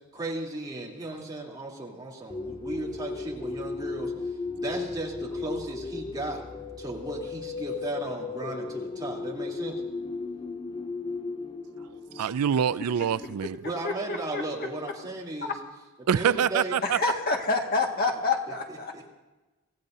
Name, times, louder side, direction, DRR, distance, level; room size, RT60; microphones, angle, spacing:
voice 1, 0.1-4.1 4.6-6.4 6.8-9.8 13.6-15.5 16.1-16.8 18.7-19.1, right 2 dB, 20° right, 3.3 m, -35 dB
sound 1, 2.3-13.3, left 4 dB, 20° left, 0.6 m, -36 dB
voice 2, 12.2-13.6 16.1-17.0, right 8 dB, 80° right, 0.4 m, -25 dB
voice 3, 13.8-14.4 16.8-18.9, left 3 dB, 45° left, 1.8 m, -27 dB
25.5 x 16.0 x 2.7 m
head